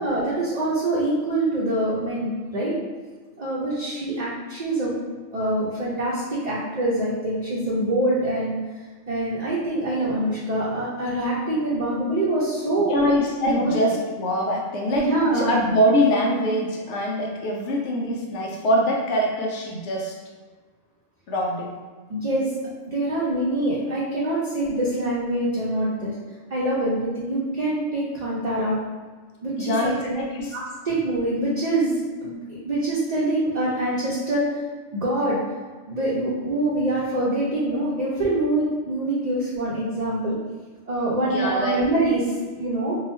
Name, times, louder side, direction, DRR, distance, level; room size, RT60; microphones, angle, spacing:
voice 1, 0.0-2.7 3.4-5.0 5.3-8.6 9.1-12.9 13.5-13.7 14.9-15.5 22.1-22.5 22.8-26.1 26.5-28.8 29.4-30.1 30.5-30.6 30.8-34.6 34.9-35.4 35.9-40.4 40.9-43.0, right 1 dB, 45° right, -7 dB, 0.6 m, -25 dB
voice 2, 12.9-15.1 15.3-20.1 21.3-21.7 29.6-30.5 41.2-41.8, equal, 75° left, -1 dB, 1.0 m, -23 dB
2.9 x 2.3 x 4.1 m, 1.4 s
omnidirectional pair, 1.2 m